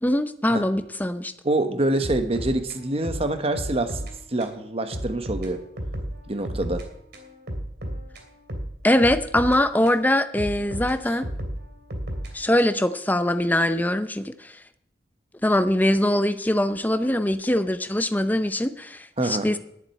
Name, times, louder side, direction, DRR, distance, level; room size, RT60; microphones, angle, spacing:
voice 1, 0.0-1.3 8.8-11.3 12.3-14.5 15.4-19.6, left 1 dB, 10° left, 10 dB, 0.6 m, -22 dB
voice 2, 1.4-4.0 4.3-5.6 6.3-6.8 19.2-19.5, right 2 dB, 30° right, 8 dB, 1.1 m, -25 dB
sound 1, 2.0-4.1 4.4-4.6 4.9-6.9 7.1-10.0 10.4-12.9, equal, 60° right, 2.6 m, -33 dB
11.0 x 7.5 x 8.9 m, 0.75 s
head